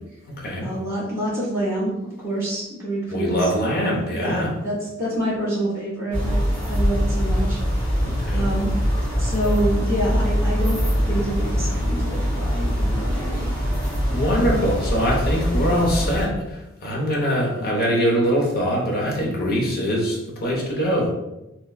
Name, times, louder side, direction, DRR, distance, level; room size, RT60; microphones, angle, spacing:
voice 1, 0.6-3.5 4.1-7.6 8.3-8.8 9.2-13.5, right 1 dB, 15° right, -8 dB, 1.5 m, -27 dB
voice 2, 3.1-4.5 8.0-8.5 13.8-21.1, equal, 45° left, -2 dB, 0.7 m, -23 dB
sound 1, 6.1-16.2, equal, 10° left, 1.2 m, -23 dB
3.2 x 2.9 x 2.3 m, 0.96 s
head